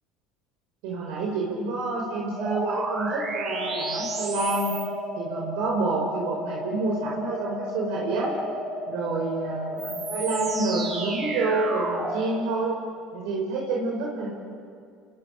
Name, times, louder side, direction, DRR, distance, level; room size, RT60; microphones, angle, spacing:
voice 1, 0.8-4.8 5.2-8.3 8.9-12.7 13.1-14.3, right 3 dB, 75° right, -2 dB, 5.2 m, -28 dB
sound 1, 2.4-12.3, right 1 dB, 35° right, 6.9 m, -32 dB
29.0 x 22.0 x 6.8 m, 2.3 s
hypercardioid pair, 80°, 0 cm